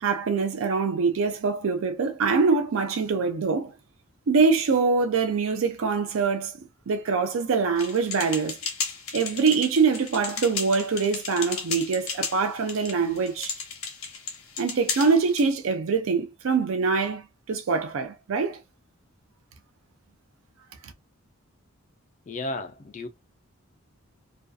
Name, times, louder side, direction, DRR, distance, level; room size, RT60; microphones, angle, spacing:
voice 1, 0.0-3.7 4.3-6.6 6.9-8.6 9.1-13.5 14.6-18.6 20.8-20.9, right 5 dB, 70° right, 0.4 m, -24 dB
sound 1, 7.8-15.5, left 5 dB, 75° left, 0.9 m, -34 dB
voice 2, 22.3-23.1, left 2 dB, 35° left, 0.3 m, -33 dB
2.5 x 2.3 x 2.3 m
head